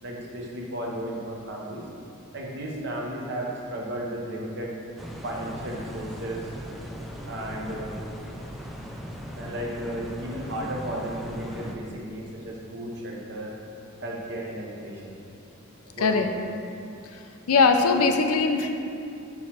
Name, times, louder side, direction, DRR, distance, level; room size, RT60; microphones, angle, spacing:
voice 1, 0.0-1.9 2.3-4.7 5.2-6.5 7.3-8.0 9.3-13.5 14.0-15.2 15.8-16.2, right 1 dB, 55° right, -2 dB, 1.0 m, -34 dB
sound 1, 5.0-11.8, equal, ahead, 0.4 m, -38 dB
voice 2, 17.5-18.7, left 4 dB, 90° left, 5 dB, 0.5 m, -20 dB
7.5 x 3.1 x 5.9 m, 2.6 s
head